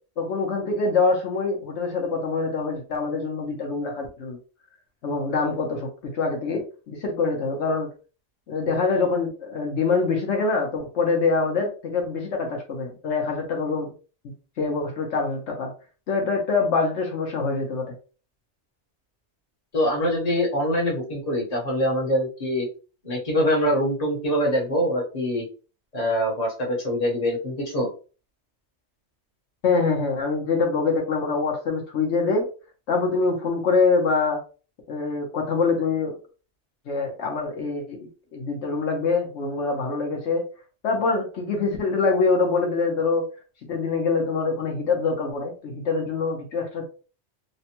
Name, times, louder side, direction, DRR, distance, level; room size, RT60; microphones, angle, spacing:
voice 1, 0.2-4.4 5.0-7.9 8.5-13.9 14.6-15.7 16.1-17.9 29.6-32.5 32.9-34.4 34.9-36.1 36.9-40.4 40.8-43.2 43.7-46.9, left 4 dB, 75° left, 1 dB, 1.1 m, -24 dB
voice 2, 19.7-22.7 23.0-25.4 25.9-27.9, equal, 35° left, -3 dB, 1.2 m, -24 dB
3.3 x 2.1 x 2.9 m, 0.35 s
omnidirectional pair, 1.2 m